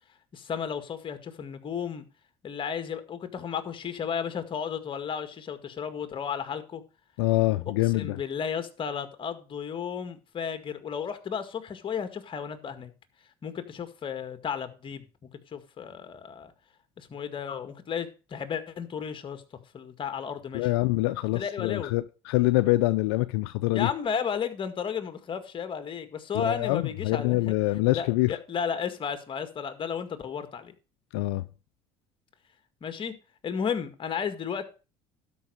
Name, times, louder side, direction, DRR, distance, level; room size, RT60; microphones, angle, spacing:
voice 1, 0.3-2.0 2.4-6.8 8.0-12.9 13.4-15.1 15.5-16.5 17.0-19.4 19.7-20.7 21.3-21.9 23.7-27.5 27.9-30.7 32.8-33.1 33.4-34.6, left 7 dB, 40° left, 1.9 m, -33 dB
voice 2, 7.2-8.2 20.5-23.9 26.3-28.4 31.1-31.4, left 19 dB, 85° left, 0.5 m, -25 dB
12.5 x 5.4 x 6.3 m
supercardioid pair, 85°, 13 cm